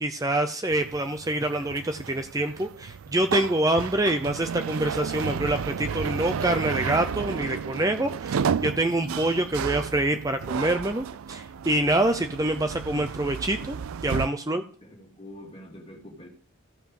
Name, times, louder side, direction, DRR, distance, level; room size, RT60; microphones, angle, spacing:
voice 1, 0.0-13.8 14.0-14.6, right 1 dB, 15° right, 0.6 m, -26 dB
sound 1, 0.7-14.3, right 6 dB, 90° right, 0.4 m, -32 dB
voice 2, 14.4-16.3, left 1 dB, 30° left, 2.7 m, -46 dB
15.0 x 5.5 x 6.5 m
head